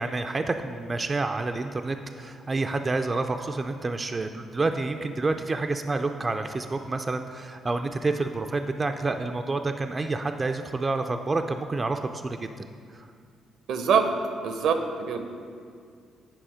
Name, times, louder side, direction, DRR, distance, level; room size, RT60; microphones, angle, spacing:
voice 1, 0.0-12.4 12.9-13.1, right 3 dB, 30° right, 6 dB, 0.3 m, -28 dB
voice 2, 13.7-14.1 14.4-15.2, right 6 dB, 75° right, 6 dB, 0.7 m, -24 dB
9.0 x 4.9 x 4.9 m, 2.2 s
cardioid pair, 90°, 0 cm